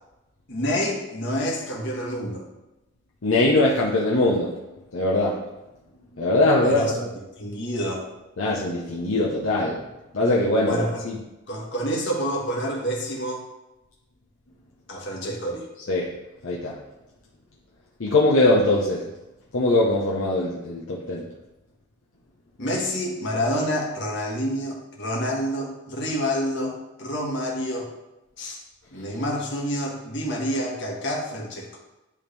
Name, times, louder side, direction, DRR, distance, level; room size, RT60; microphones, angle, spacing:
voice 1, 0.5-2.4 6.6-8.1 10.6-11.0 11.5-13.4 14.9-15.6 22.6-27.9 28.4-28.6 28.9-31.8, equal, 60° left, -2 dB, 1.6 m, -28 dB
voice 2, 3.2-4.5 4.9-5.4 6.2-7.1 8.4-9.8 10.1-11.2 15.9-16.1 16.4-16.7 18.0-19.0 19.5-21.2, left 2 dB, 80° left, -5 dB, 0.9 m, -21 dB
11.0 x 3.6 x 3.4 m, 1.0 s
head